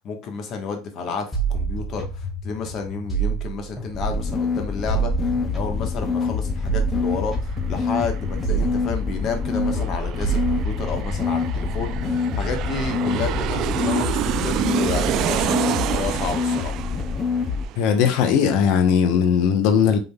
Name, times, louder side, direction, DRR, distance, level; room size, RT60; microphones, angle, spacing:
voice 1, 0.0-16.8, left 5 dB, 45° left, 1.3 m, -31 dB
sound 1, 1.3-4.4 4.9-9.3 9.5-12.0, right 5 dB, 10° left, 1.9 m, -28 dB
sound 2, 3.9-17.6, left 5 dB, 30° left, 0.6 m, -26 dB
Aircraft, 6.8-6.9 7.2-18.5 18.8-18.9, right 12 dB, 55° right, 0.3 m, -29 dB
voice 2, 17.8-20.0, left 7 dB, 65° left, 0.9 m, -18 dB
5.3 x 3.8 x 2.3 m
supercardioid pair, 120°, 0 cm